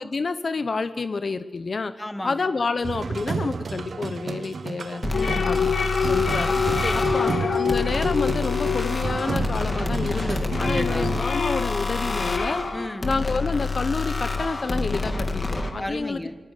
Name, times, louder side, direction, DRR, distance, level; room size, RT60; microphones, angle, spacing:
voice 1, 0.0-1.9 2.2-5.0 5.4-5.7 6.1-6.6 7.1-12.6 13.0-16.2, left 4 dB, 55° left, 11 dB, 0.8 m, -29 dB
voice 2, 2.0-2.5 5.1-5.5 6.8-7.3 10.6-11.1 12.7-13.1 15.8-16.4, left 1 dB, 10° left, 10 dB, 1.4 m, -34 dB
sound 1, 2.8-11.3, right 4 dB, 70° right, 0.8 m, -31 dB
sound 2, 5.0-15.7, left 3 dB, 40° left, 2.4 m, -28 dB
sound 3, 5.1-9.8 10.2-13.0, left 6 dB, 85° left, 1.3 m, -27 dB
24.5 x 18.5 x 6.7 m, 1.3 s
wide cardioid pair, 90°, 0 cm